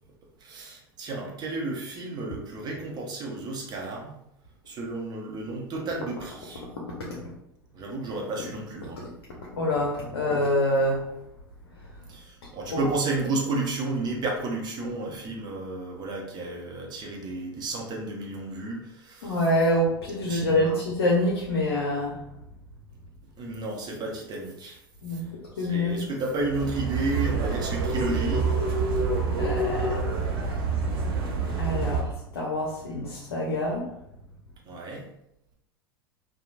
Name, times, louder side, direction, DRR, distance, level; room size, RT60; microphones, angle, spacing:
voice 1, 0.4-4.2 4.7-6.6 7.7-9.0 12.1-19.4 20.2-20.8 23.4-24.8 25.1-25.2 25.6-28.5 34.6-35.1, right 2 dB, 30° right, -1 dB, 0.8 m, -32 dB
voice 2, 9.5-11.1 12.7-12.8 19.2-22.2 25.0-25.3 25.6-26.0 29.4-30.0 31.6-33.9, left 1 dB, 70° left, -3 dB, 0.6 m, -26 dB
sound 1, 26.3-32.0, right 4 dB, 65° right, 0.6 m, -27 dB
2.9 x 2.2 x 2.4 m, 0.80 s
figure-of-eight pair, 85°, 13 cm